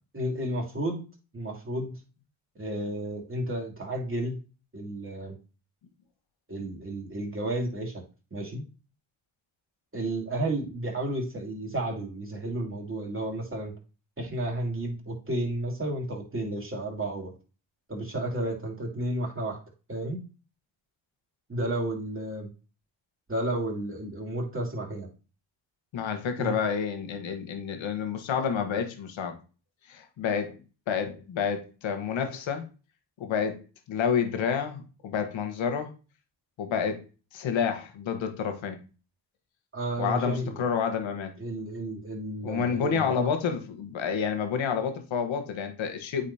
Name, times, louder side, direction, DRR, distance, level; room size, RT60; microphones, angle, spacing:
voice 1, 0.1-1.1 1.3-2.0 2.5-4.4 4.7-5.4 6.5-8.0 8.3-8.6 9.9-13.7 14.2-17.3 17.9-19.6 19.9-20.2 21.5-22.5 23.3-25.1 26.4-26.5 39.7-40.6 41.4-43.3, right 1 dB, 25° right, -1 dB, 2.8 m, -32 dB
voice 2, 25.9-29.4 29.9-30.6 30.9-32.7 33.2-33.6 33.9-35.9 36.6-37.0 37.3-38.8 40.0-41.3 42.4-46.3, left 7 dB, 70° left, 7 dB, 1.4 m, -29 dB
8.6 x 4.1 x 2.8 m, 0.35 s
supercardioid pair, 55°, 48 cm